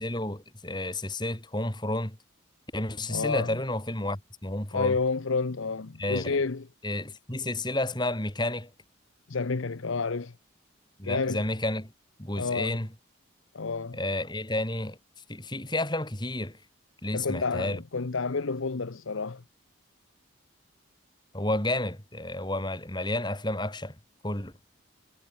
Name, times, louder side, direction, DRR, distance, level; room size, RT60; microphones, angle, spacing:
voice 1, 0.0-2.2 2.7-5.0 6.0-6.4 6.8-8.7 11.0-11.9 12.2-12.9 13.9-15.0 15.3-16.6 17.0-17.8 21.3-24.0 24.2-24.5, left 1 dB, 20° left, 3.8 m, -31 dB
voice 2, 3.1-3.6 4.7-6.6 9.3-10.3 11.0-11.4 12.3-12.8 13.5-14.0 17.1-19.4, left 4 dB, 75° left, 0.8 m, -30 dB
head